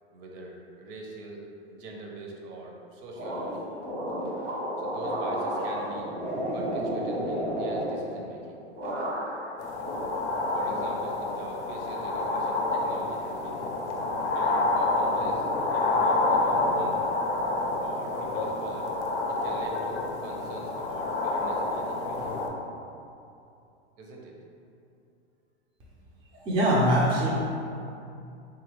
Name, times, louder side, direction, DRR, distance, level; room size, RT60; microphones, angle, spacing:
voice 1, 0.1-3.6 4.8-6.1 6.5-8.6 10.5-13.7 14.3-17.1 17.8-18.9 19.3-22.3 24.0-24.4, right 2 dB, 55° right, -1 dB, 0.6 m, -43 dB
sound 1, 3.2-8.4 8.7-9.5 9.8-10.7, equal, 80° right, 1.3 m, -32 dB
sound 2, 9.6-22.5, left 2 dB, 80° left, 0.5 m, -28 dB
voice 2, 26.4-27.3, equal, 15° right, -5 dB, 0.3 m, -22 dB
2.8 x 2.4 x 3.1 m, 2.6 s
hypercardioid pair, 115°, 34 cm